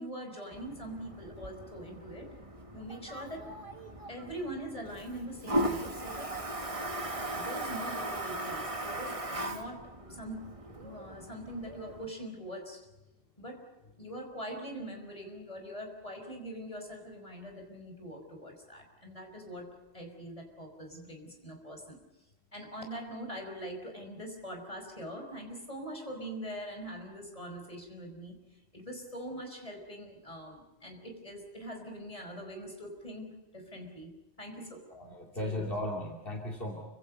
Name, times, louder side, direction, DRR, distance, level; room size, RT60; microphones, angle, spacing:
voice 1, 0.0-2.3 2.7-3.5 4.1-6.4 7.3-12.9 13.4-13.7 14.0-22.0 22.5-28.4 28.7-34.1 34.4-34.8 35.4-35.7, equal, 35° left, 3 dB, 5.6 m, -43 dB
Toilet flush, 0.5-12.1, right 1 dB, 30° right, 1.8 m, -38 dB
voice 2, 7.0-7.4 34.9-36.8, left 1 dB, 60° left, 0 dB, 3.0 m, -37 dB
29.0 x 25.5 x 5.4 m, 1.0 s
omnidirectional pair, 1.1 m